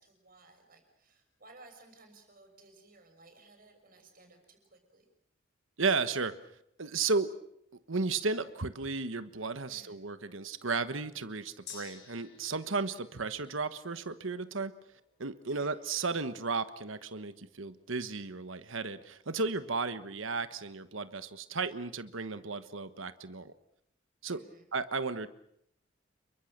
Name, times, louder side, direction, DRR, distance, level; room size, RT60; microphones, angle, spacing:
voice 1, 0.0-5.1 9.7-10.0 15.4-15.7 24.3-24.7, right 2 dB, 45° right, 5 dB, 6.5 m, -58 dB
voice 2, 5.8-6.3 6.8-7.3 7.9-14.7 15.2-23.5 24.2-24.4 24.7-25.3, right 4 dB, 80° right, 12 dB, 1.3 m, -34 dB
Gong, 11.7-19.4 19.8-19.9, left 7 dB, 55° left, 6.5 m, -56 dB
29.0 x 23.0 x 6.7 m, 0.74 s
head